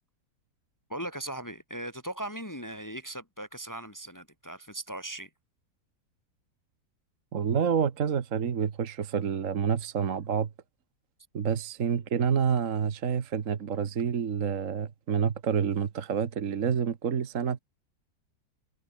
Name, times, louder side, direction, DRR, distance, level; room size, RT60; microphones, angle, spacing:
voice 1, 0.9-5.3, right 1 dB, 10° left, 2.4 m, -38 dB
voice 2, 7.3-10.5 11.3-17.6, right 7 dB, 55° right, 1.6 m, -28 dB
omnidirectional pair, 1.7 m